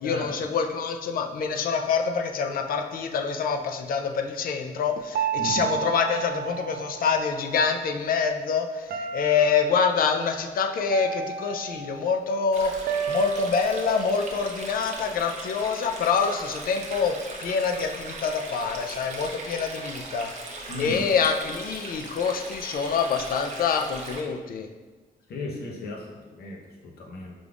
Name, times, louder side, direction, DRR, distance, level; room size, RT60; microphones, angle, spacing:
voice 1, 0.0-17.1 17.4-20.3 20.8-24.7, left 6 dB, 65° left, 4 dB, 0.4 m, -26 dB
sound 1, 5.1-7.5 8.9-9.9 10.9-12.2 12.9-15.2, right 7 dB, 75° right, 0.4 m, -32 dB
Stream, 12.5-24.2, right 2 dB, 45° right, 0.7 m, -39 dB
voice 2, 20.7-21.0 25.3-27.3, left 3 dB, 80° left, -1 dB, 0.8 m, -35 dB
5.2 x 3.4 x 2.4 m, 1.3 s
cardioid pair, 115°, 16 cm